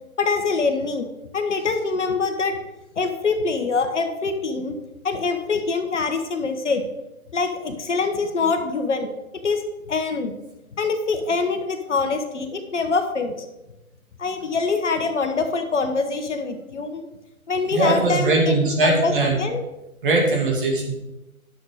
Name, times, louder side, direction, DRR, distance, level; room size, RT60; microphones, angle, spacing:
voice 1, 0.2-1.1 1.3-2.5 3.0-4.8 5.0-6.8 7.3-9.1 9.4-9.6 9.9-10.3 10.7-13.3 14.2-17.1 17.5-19.6, left 4 dB, 55° left, 6 dB, 1.2 m, -24 dB
voice 2, 17.7-19.4 20.0-21.0, right 2 dB, 35° right, 0 dB, 2.3 m, -20 dB
10.5 x 6.4 x 4.8 m, 0.99 s
figure-of-eight pair, 155°, 43 cm